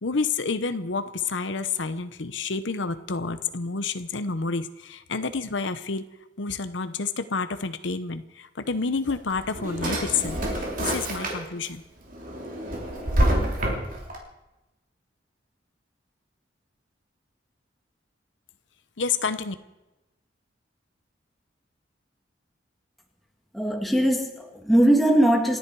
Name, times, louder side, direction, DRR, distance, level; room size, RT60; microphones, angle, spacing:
voice 1, 0.0-6.0 6.4-11.8 19.0-19.5, left 4 dB, 75° left, 10 dB, 0.9 m, -29 dB
Drawer open or close, 9.1-11.7 12.1-14.2, right 1 dB, 45° right, 3.2 m, -27 dB
voice 2, 23.5-25.6, right 1 dB, ahead, 2 dB, 1.9 m, -20 dB
28.0 x 10.5 x 4.7 m, 1.0 s
head